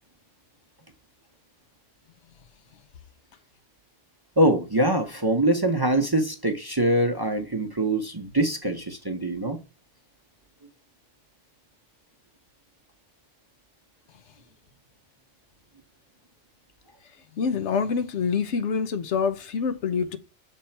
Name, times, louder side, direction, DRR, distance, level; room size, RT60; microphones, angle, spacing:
voice 1, 4.4-9.6, right 1 dB, 25° right, 0.7 m, -23 dB
voice 2, 17.4-20.2, left 6 dB, 75° left, 1.0 m, -26 dB
6.7 x 3.7 x 4.3 m
omnidirectional pair, 1.2 m